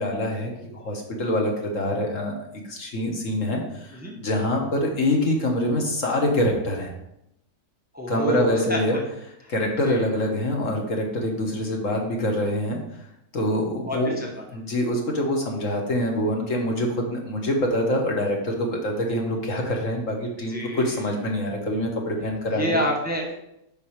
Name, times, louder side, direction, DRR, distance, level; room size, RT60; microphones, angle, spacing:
voice 1, 0.0-2.3 2.6-6.9 8.1-9.0 9.5-12.8 13.3-14.2 14.5-22.8, left 1 dB, 55° left, 1 dB, 1.6 m, -25 dB
voice 2, 7.9-9.0 9.4-9.5 9.8-10.0 13.9-14.4 20.5-21.0 22.5-23.3, equal, 5° right, 0 dB, 1.1 m, -28 dB
7.7 x 5.3 x 4.8 m, 0.81 s
omnidirectional pair, 1.7 m